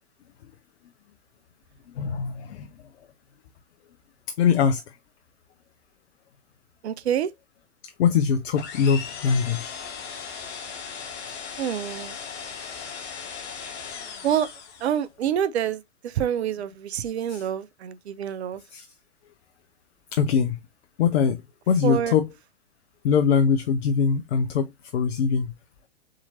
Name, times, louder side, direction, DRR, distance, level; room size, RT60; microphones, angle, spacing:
voice 1, 2.0-2.7 4.4-4.8 7.8-9.7 17.3-17.4 18.7-18.9 20.1-20.6 21.0-21.4 21.7-22.3 23.0-25.5, left 6 dB, 60° left, 0.7 m, -22 dB
voice 2, 6.8-7.3 11.6-12.2 14.2-14.5 14.8-18.6 21.8-22.1, right 9 dB, 65° right, 0.7 m, -27 dB
sound 1, 8.5-15.1, left 6 dB, 30° left, 1.2 m, -37 dB
4.2 x 3.8 x 2.7 m
figure-of-eight pair, 105°, 36 cm